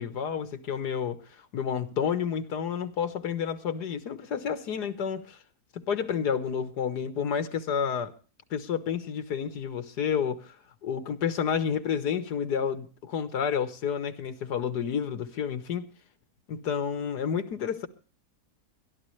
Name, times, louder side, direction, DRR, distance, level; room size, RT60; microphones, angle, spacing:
voice 1, 0.0-5.4 5.7-8.1 8.5-10.6 10.8-15.9 16.5-17.9, left 7 dB, 85° left, 1.9 m, -30 dB
22.0 x 13.0 x 3.2 m
omnidirectional pair, 1.7 m